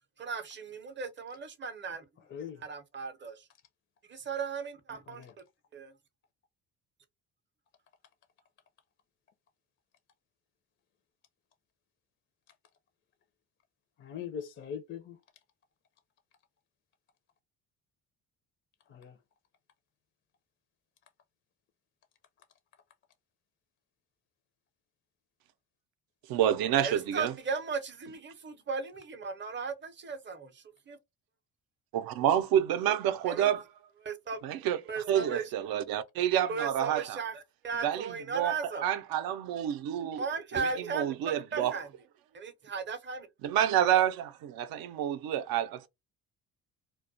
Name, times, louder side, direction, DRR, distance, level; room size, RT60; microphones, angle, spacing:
voice 1, 0.2-2.0 2.6-3.4 4.1-5.2 5.7-5.9 26.8-31.0 33.3-33.5 34.0-34.4 34.9-35.5 36.5-38.9 40.2-41.9 42.3-43.3, right 5 dB, 30° right, 0.6 m, -36 dB
voice 2, 2.3-2.6 5.1-5.3 14.0-15.2 18.9-19.2, left 8 dB, 35° left, 0.4 m, -41 dB
voice 3, 26.3-27.3 31.9-33.6 34.4-34.8 35.1-37.2 37.8-40.2 40.5-41.8 43.4-45.9, right 10 dB, 70° right, 0.5 m, -28 dB
2.2 x 2.1 x 2.5 m
cardioid pair, 95°, 37 cm